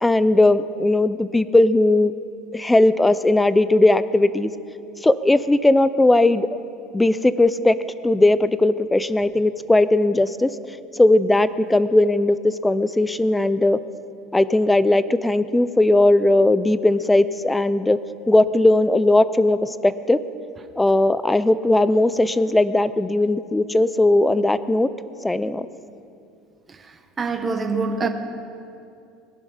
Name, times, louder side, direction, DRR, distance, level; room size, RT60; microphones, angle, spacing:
voice 1, 0.0-2.1 2.5-4.5 5.0-6.5 6.9-7.7 8.0-10.5 11.0-13.8 14.3-18.0 18.3-20.2 20.8-24.9 25.2-25.7, left 2 dB, 5° left, 0.4 m, -18 dB
voice 2, 27.2-28.1, right 4 dB, 20° right, 1.0 m, -24 dB
20.0 x 11.5 x 5.6 m
cardioid pair, 160°, 0 cm